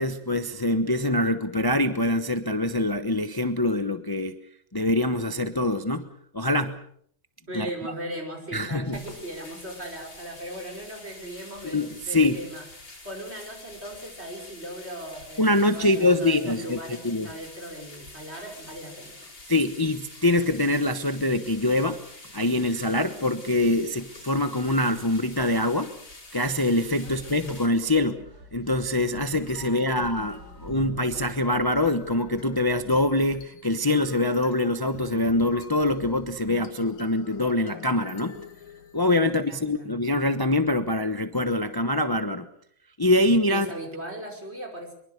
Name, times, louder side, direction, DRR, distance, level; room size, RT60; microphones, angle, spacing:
voice 1, 0.0-4.4 4.7-6.1 6.3-6.7 7.5-7.7 8.5-9.0 11.6-12.4 15.4-17.3 19.5-22.0 22.3-25.9 26.3-28.2 28.5-38.4 38.9-42.5 43.0-43.7, left 1 dB, 25° left, 9 dB, 0.5 m, -24 dB
voice 2, 7.5-12.6 13.0-19.2 27.0-27.4 29.6-30.5 39.2-39.9 43.5-44.9, right 1 dB, 30° right, 2 dB, 5.9 m, -38 dB
sound 1, 8.9-27.7, left 2 dB, 50° left, 5.9 m, -46 dB
sound 2, 27.1-33.5, equal, 50° right, 4.8 m, -48 dB
sound 3, 29.1-39.4, left 7 dB, 80° left, 2.4 m, -45 dB
24.0 x 23.0 x 6.6 m, 0.65 s
omnidirectional pair, 2.2 m